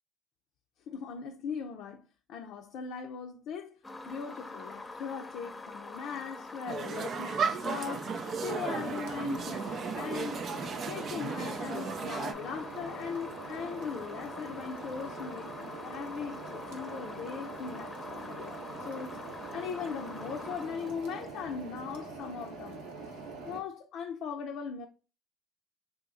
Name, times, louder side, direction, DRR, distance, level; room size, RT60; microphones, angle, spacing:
voice 1, 0.9-3.8 4.0-8.1 8.4-10.5 10.9-19.2 19.5-22.9 23.5-24.9, left 6 dB, 65° left, 0.4 m, -39 dB
sound 1, 3.8-21.8, left 2 dB, 20° left, 0.7 m, -45 dB
sound 2, 6.7-12.3, right 5 dB, 50° right, 0.4 m, -35 dB
sound 3, 8.8-23.6, right 3 dB, 75° right, 0.7 m, -44 dB
2.8 x 2.5 x 3.7 m
hypercardioid pair, 60°, 0 cm